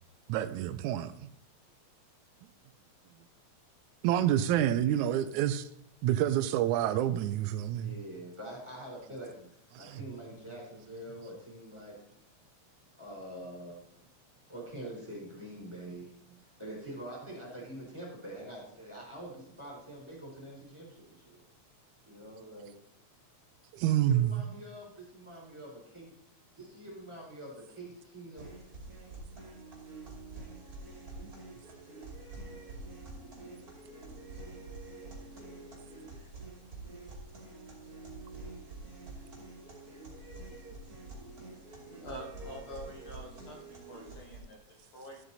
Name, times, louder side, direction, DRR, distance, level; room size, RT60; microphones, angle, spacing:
voice 1, 0.3-1.3 4.0-5.7 6.0-7.9 9.8-10.0 23.7-24.4 31.2-31.3, right 11 dB, 85° right, 2.0 m, -28 dB
voice 2, 7.8-11.9 13.0-13.8 14.5-16.1 16.4-21.4 22.0-22.7 24.1-26.1 26.6-28.5 40.4-40.5, right 1 dB, 10° right, 4.0 m, -45 dB
sound 1, 28.4-44.4, right 2 dB, 30° right, 2.9 m, -47 dB
voice 3, 42.0-45.2, equal, 50° left, 2.2 m, -46 dB
12.5 x 8.0 x 4.1 m
omnidirectional pair, 3.3 m